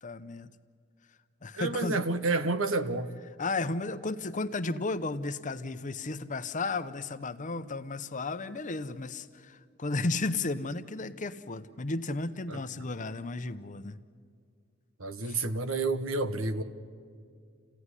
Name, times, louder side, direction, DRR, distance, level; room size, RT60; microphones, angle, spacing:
voice 1, 0.0-0.5 1.4-2.0 3.4-14.0 15.3-15.4, left 3 dB, 40° left, 11 dB, 0.8 m, -34 dB
voice 2, 1.5-3.1 12.5-12.6 15.0-16.6, right 3 dB, 80° right, 9 dB, 1.3 m, -29 dB
28.5 x 16.5 x 9.9 m, 2.3 s
head